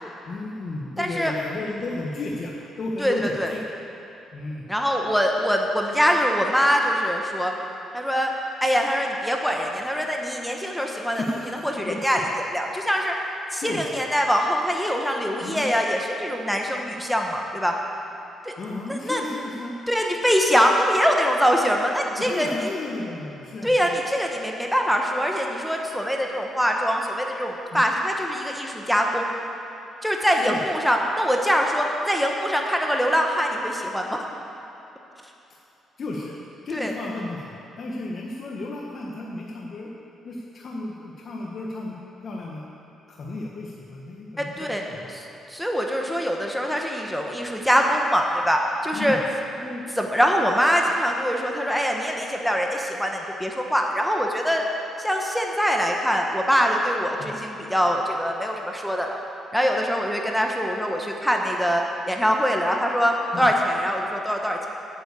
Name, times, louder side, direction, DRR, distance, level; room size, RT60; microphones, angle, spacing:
voice 1, 0.3-3.6 4.3-4.7 11.1-12.2 13.6-14.0 15.4-15.6 18.6-19.8 22.2-23.9 27.7-27.8 30.3-30.6 36.0-36.4 36.6-39.9 40.2-42.0 42.2-42.7 43.1-45.1 48.9-49.2 57.2-57.3 63.3-63.5, left 2 dB, 50° left, -2 dB, 1.2 m, -33 dB
voice 2, 1.0-1.3 3.0-3.5 4.7-7.5 7.9-8.3 8.6-11.2 11.6-12.2 12.5-13.1 13.5-17.7 18.4-18.5 18.9-19.2 19.9-22.5 23.6-29.3 30.0-34.2 36.7-36.9 44.4-44.8 45.1-45.2 45.5-49.2 49.6-54.6 55.0-59.2 59.5-64.7, equal, ahead, 1 dB, 1.1 m, -23 dB
9.0 x 7.1 x 8.4 m, 2.8 s
cardioid pair, 90°, 0 cm